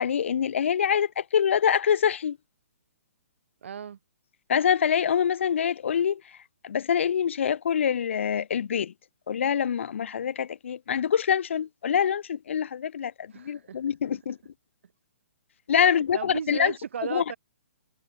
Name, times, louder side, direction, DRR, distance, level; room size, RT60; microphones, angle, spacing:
voice 1, 0.0-2.4 4.5-6.2 6.6-8.9 9.3-14.4 15.7-16.7 17.1-17.2, left 8 dB, 65° left, 1.3 m, -25 dB
voice 2, 3.6-4.0 13.3-13.8 15.8-17.4, right 7 dB, 65° right, 6.1 m, -36 dB
hypercardioid pair, 135°, 7 cm